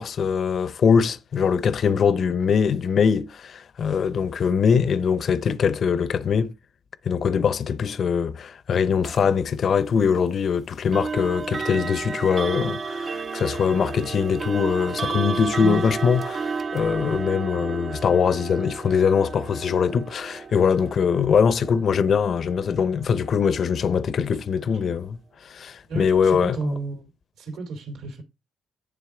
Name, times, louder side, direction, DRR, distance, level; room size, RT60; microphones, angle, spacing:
voice 1, 0.0-6.5 7.0-26.8, left 6 dB, 55° left, 0.5 m, -22 dB
sound 1, 9.0-9.2 10.9-23.8, right 4 dB, 40° right, 0.3 m, -32 dB
voice 2, 25.9-27.1 27.4-28.2, right 3 dB, 90° right, 2.7 m, -31 dB
10.5 x 3.5 x 4.9 m
cardioid pair, 90°, 0 cm